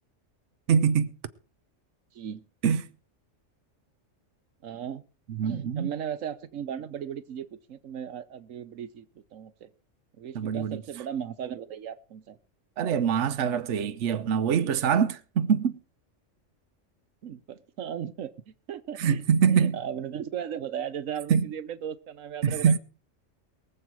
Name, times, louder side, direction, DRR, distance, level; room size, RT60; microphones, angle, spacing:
voice 1, 0.7-1.1 2.6-2.9 5.3-5.9 10.3-10.8 12.8-15.8 19.0-19.8 21.3-21.5 22.4-22.8, right 7 dB, 70° right, 1.1 m, -24 dB
voice 2, 2.1-2.4 4.6-5.0 5.4-9.7 10.2-12.4 17.2-19.2 19.5-22.8, right 9 dB, 85° right, 1.3 m, -36 dB
23.0 x 7.8 x 4.6 m
omnidirectional pair, 1.3 m